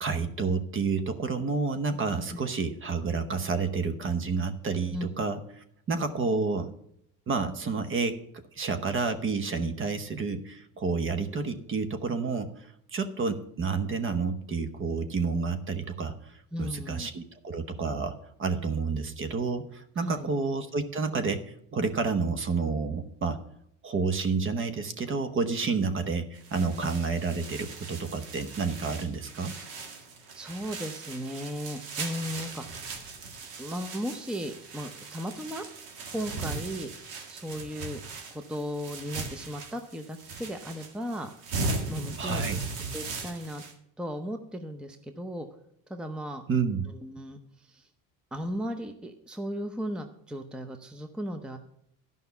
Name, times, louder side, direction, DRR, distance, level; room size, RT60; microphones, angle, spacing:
voice 1, 0.0-6.7 7.3-8.2 8.5-21.4 21.7-23.4 23.8-29.5 42.2-42.6 46.5-46.9, right 4 dB, 35° right, 10 dB, 1.0 m, -30 dB
voice 2, 16.5-17.1 20.0-20.3 30.3-32.6 33.6-35.7 36.1-36.9 37.3-38.0 38.3-41.3 41.9-42.6 42.9-43.6 44.0-45.5 45.9-46.4 47.0-47.9 48.3-51.6, equal, ahead, 7 dB, 0.7 m, -36 dB
sound 1, 26.4-43.7, right 3 dB, 75° right, 2.0 m, -38 dB
11.5 x 5.5 x 6.9 m, 0.71 s
cardioid pair, 120°, 37 cm